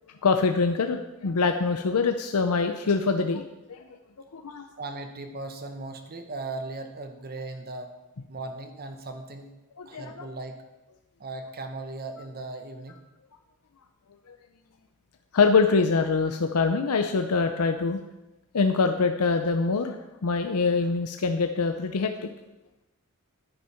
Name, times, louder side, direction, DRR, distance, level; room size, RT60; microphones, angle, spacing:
voice 1, 0.2-3.8 4.3-4.7 9.8-10.3 15.3-18.0 18.5-20.0 20.2-22.3, left 4 dB, 85° left, 6 dB, 0.6 m, -24 dB
voice 2, 4.8-7.9 8.3-9.5 9.8-10.6 11.2-13.0, right 2 dB, 45° right, 6 dB, 1.2 m, -37 dB
10.5 x 9.1 x 4.5 m, 1.0 s
head